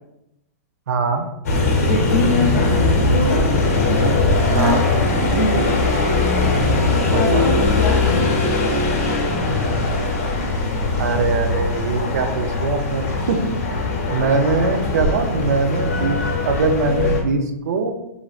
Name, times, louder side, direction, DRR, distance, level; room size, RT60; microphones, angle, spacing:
voice 1, 0.9-1.3 4.5-4.9 7.1-7.5 11.0-13.5 14.1-17.9, right 4 dB, 75° right, 6 dB, 0.5 m, -22 dB
sound 1, 1.4-17.2, left 2 dB, 65° left, 0.8 m, -20 dB
voice 2, 1.9-3.5 4.5-4.7 5.3-5.9 7.1-8.3, left 2 dB, 30° left, -3 dB, 0.8 m, -24 dB
3.1 x 2.4 x 2.4 m, 0.87 s
hypercardioid pair, 165°, 9 cm